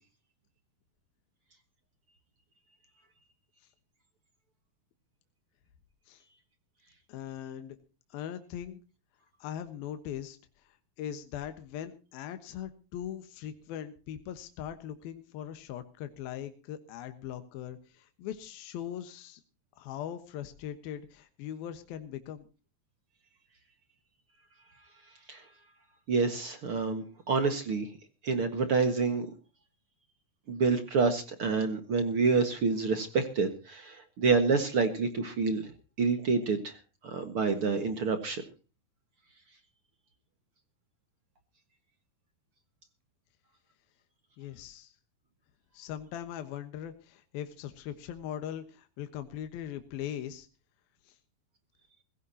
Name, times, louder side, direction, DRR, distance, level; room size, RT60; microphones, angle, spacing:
voice 1, 7.1-7.8 8.1-8.8 9.4-19.4 19.8-22.5 44.4-45.0 45.7-50.5 51.0-51.2, left 10 dB, 75° left, 8 dB, 3.0 m, -40 dB
voice 2, 26.1-27.9 28.2-29.3 30.5-35.7 36.0-36.8 37.0-38.4, right 4 dB, 50° right, 8 dB, 1.9 m, -28 dB
20.5 x 16.5 x 2.9 m, 0.34 s
omnidirectional pair, 4.4 m